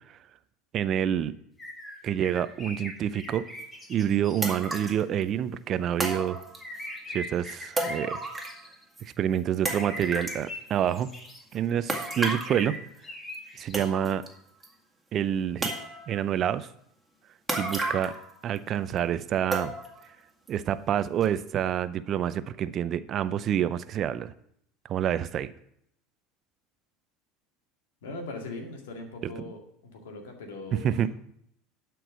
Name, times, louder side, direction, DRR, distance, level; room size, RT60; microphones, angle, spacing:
voice 1, 0.7-1.3 2.0-3.5 3.9-6.4 7.1-8.2 9.0-11.1 11.5-12.8 13.6-14.2 15.1-15.7 16.1-16.7 17.6-18.2 18.4-19.8 20.5-24.3 24.9-25.5 29.2-29.3 30.8-31.1, right 10 dB, 45° right, 15 dB, 0.5 m, -27 dB
sound 1, 1.6-4.9 6.6-8.8 9.7-11.4 12.0-13.9, left 1 dB, 20° left, 2.3 m, -41 dB
sound 2, 3.6-3.7 4.4-5.0 6.0-6.9 7.8-8.7 9.0-9.1 9.7-10.4 11.9-12.5 13.3-13.4 13.7-14.3 14.6-14.7 15.6-16.2 17.5-18.3 18.6-18.7 19.5-20.0 20.5-20.6 21.2-21.3, right 2 dB, 10° right, 2.0 m, -32 dB
voice 2, 28.0-31.0, left 2 dB, 75° left, 3 dB, 2.0 m, -40 dB
11.5 x 4.6 x 6.2 m, 0.71 s
hypercardioid pair, 75°, 0 cm